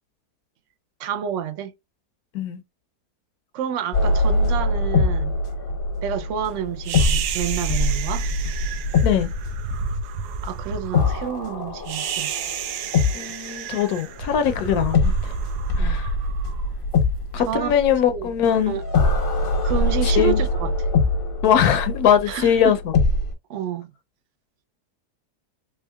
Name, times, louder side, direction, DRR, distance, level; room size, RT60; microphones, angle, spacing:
voice 1, 1.0-1.7 3.5-5.4 6.0-8.3 10.4-12.4 15.7-16.0 17.4-17.7 18.1-18.3 18.7-18.8 19.6-20.9 22.3-22.7 23.5-23.9, right 9 dB, 65° right, 0.8 m, -29 dB
sound 1, 3.9-13.7 14.9-23.3, left 2 dB, 45° left, 0.8 m, -23 dB
sound 2, 6.8-17.2, right 5 dB, 80° right, 1.1 m, -31 dB
voice 2, 13.1-15.3 15.8-16.1 17.3-18.8 20.0-20.4 21.4-22.8, left 8 dB, 75° left, 1.1 m, -21 dB
3.6 x 3.1 x 2.2 m
omnidirectional pair, 1.7 m